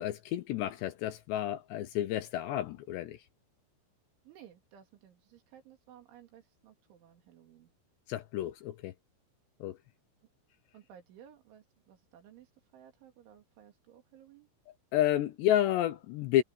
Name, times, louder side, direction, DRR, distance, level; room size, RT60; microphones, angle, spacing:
voice 1, 0.0-3.2 8.1-8.9 9.6-9.8 14.9-16.4, left 12 dB, 75° left, 2.7 m, -30 dB
voice 2, 4.2-7.7 10.7-14.5, right 10 dB, 70° right, 5.0 m, -57 dB
omnidirectional pair, 5.7 m